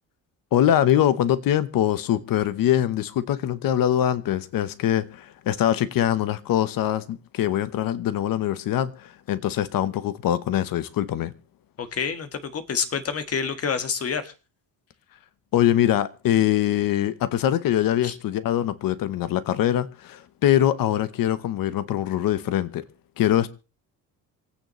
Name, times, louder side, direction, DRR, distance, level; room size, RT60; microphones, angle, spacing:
voice 1, 0.5-11.3 15.5-22.8 23.2-23.5, left 11 dB, 60° left, 1.1 m, -23 dB
voice 2, 11.8-14.3 18.0-18.2, left 6 dB, 40° left, 1.6 m, -28 dB
27.0 x 9.2 x 3.1 m
cardioid pair, 140°, 38 cm